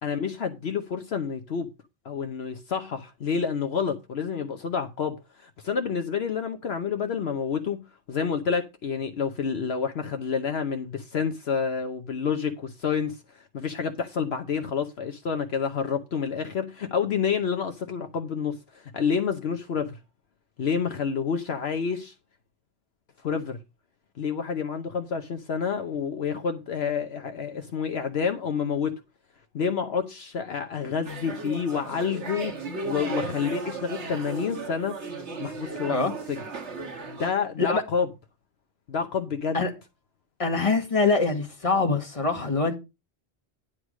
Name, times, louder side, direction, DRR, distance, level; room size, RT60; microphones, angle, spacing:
voice 1, 0.0-1.7 2.0-20.0 20.6-22.1 23.2-23.6 24.2-28.9 29.5-34.9 35.4-36.0 36.3-36.4 37.1-38.1 38.9-39.6, left 6 dB, 65° left, 1.1 m, -29 dB
sound 1, 31.0-37.3, right 4 dB, 85° right, 1.8 m, -36 dB
voice 2, 40.4-42.8, left 3 dB, 30° left, 1.8 m, -24 dB
10.5 x 4.8 x 6.2 m
omnidirectional pair, 1.2 m